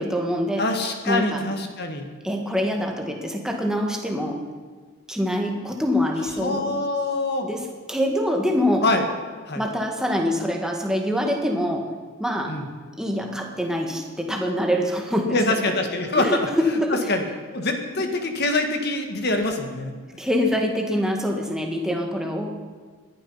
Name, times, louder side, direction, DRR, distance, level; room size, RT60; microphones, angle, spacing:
voice 1, 0.0-0.6 1.1-1.4 2.2-4.4 5.1-6.8 7.4-8.8 9.5-11.9 12.2-12.5 13.0-15.4 15.6-15.7 16.2-17.0 20.2-22.5, equal, 5° right, 2 dB, 1.7 m, -25 dB
voice 2, 0.6-2.1 6.4-7.5 8.8-9.0 9.5-9.6 12.5-12.7 15.3-16.5 17.1-17.2 17.5-19.9, left 2 dB, 50° left, 5 dB, 1.7 m, -24 dB
19.5 x 11.5 x 5.6 m, 1.5 s
head